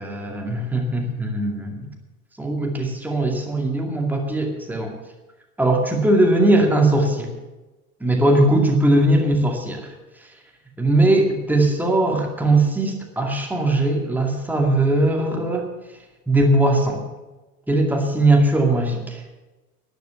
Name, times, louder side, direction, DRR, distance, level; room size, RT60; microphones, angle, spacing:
voice 1, 0.0-1.9 2.4-4.9 5.6-7.3 8.0-9.9 10.8-15.7 16.3-17.0 17.7-19.2, right 1 dB, 5° right, 1 dB, 2.3 m, -19 dB
12.5 x 11.0 x 7.1 m, 1.1 s
figure-of-eight pair, 85°, 46 cm